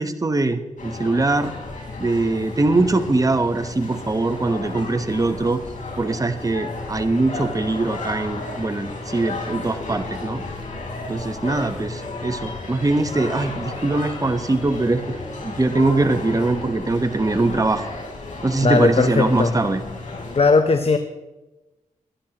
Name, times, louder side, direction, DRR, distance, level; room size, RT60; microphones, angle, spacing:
voice 1, 0.0-1.5 2.0-5.6 6.0-10.4 11.1-15.2 15.4-17.8 18.4-19.8, right 2 dB, 25° right, 8 dB, 1.0 m, -22 dB
sound 1, 0.8-20.4, left 3 dB, 65° left, 4.2 m, -33 dB
voice 2, 18.6-19.5 20.3-21.0, left 4 dB, 45° left, 8 dB, 0.8 m, -17 dB
22.5 x 10.5 x 3.0 m, 1.1 s
cardioid pair, 55°, 14 cm